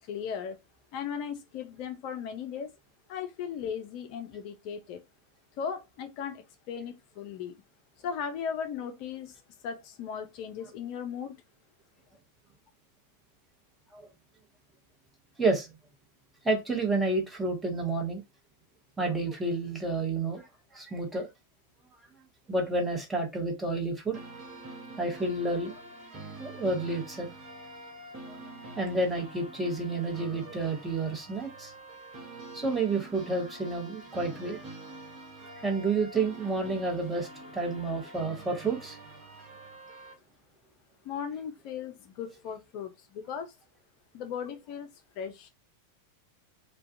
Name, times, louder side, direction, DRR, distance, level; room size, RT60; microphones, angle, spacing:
voice 1, 0.1-0.6 0.9-2.7 3.1-5.0 5.6-7.5 8.0-9.4 9.6-11.3 41.0-43.5 44.1-44.9 45.2-45.5, left 7 dB, 45° left, 0.4 m, -37 dB
voice 2, 16.4-18.2 19.0-20.4 20.7-21.3 22.5-24.2 25.0-25.8 26.4-27.3 28.3-28.4 28.8-31.7 32.5-34.6 35.6-39.0, right 3 dB, 10° right, 0.8 m, -30 dB
sound 1, 24.1-40.1, right 2 dB, 35° right, 0.9 m, -46 dB
2.3 x 2.2 x 2.5 m
figure-of-eight pair, 90°, 0 cm